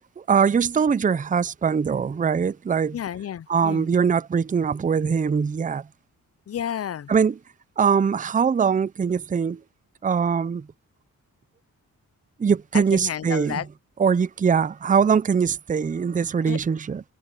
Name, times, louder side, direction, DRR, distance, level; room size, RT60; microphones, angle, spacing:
voice 1, 0.2-2.9 3.5-5.8 7.1-7.3 7.8-9.6 10.0-10.7 12.4-13.6 14.0-17.0, right 6 dB, 25° right, 0.5 m, -22 dB
voice 2, 2.9-3.9 6.5-7.1 12.7-13.7 16.4-16.6, left 9 dB, 45° left, 0.5 m, -31 dB
cardioid pair, 90°, 34 cm